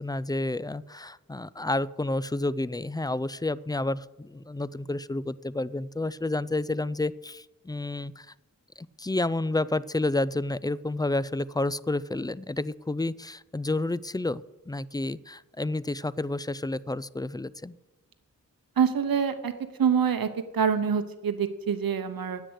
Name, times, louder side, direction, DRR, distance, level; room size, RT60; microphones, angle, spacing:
voice 1, 0.0-8.3 8.8-17.7, left 2 dB, 10° left, 19 dB, 0.3 m, -30 dB
voice 2, 18.8-19.5 19.8-20.3 20.5-22.4, right 7 dB, 85° right, 9 dB, 0.8 m, -25 dB
10.0 x 8.1 x 8.0 m, 1.1 s
wide cardioid pair, 55°, 34 cm